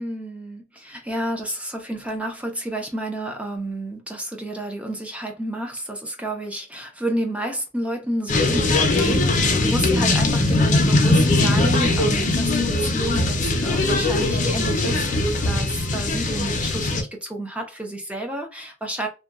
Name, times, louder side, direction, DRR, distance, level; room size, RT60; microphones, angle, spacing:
voice 1, 0.0-19.1, right 1 dB, 5° right, 0.6 m, -30 dB
sound 1, 8.3-17.0, left 2 dB, 45° left, 0.6 m, -20 dB
2.8 x 2.2 x 2.4 m
head